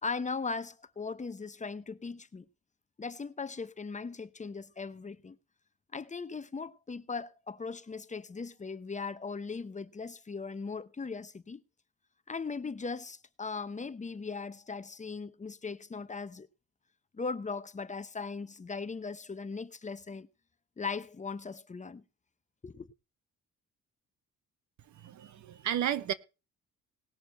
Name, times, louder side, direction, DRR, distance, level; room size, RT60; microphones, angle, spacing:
voice 1, 0.0-2.4 3.0-5.4 5.9-11.6 12.3-16.5 17.1-20.3 20.8-22.0 22.6-22.9, left 4 dB, 25° left, 0.8 m, -38 dB
voice 2, 24.9-26.1, right 10 dB, 70° right, 1.2 m, -33 dB
19.0 x 6.6 x 4.3 m
cardioid pair, 90°, 30 cm